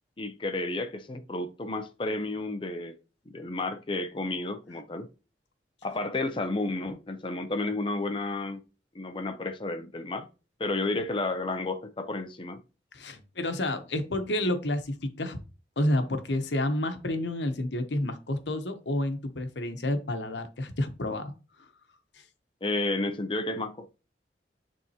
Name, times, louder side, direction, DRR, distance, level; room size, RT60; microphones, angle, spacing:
voice 1, 0.2-3.0 3.3-5.1 5.8-8.6 8.9-10.3 10.6-12.6 22.6-23.9, left 2 dB, 30° left, 0.5 m, -31 dB
voice 2, 12.9-15.4 15.8-21.3, left 1 dB, 90° left, 1.0 m, -29 dB
9.6 x 3.6 x 2.8 m
head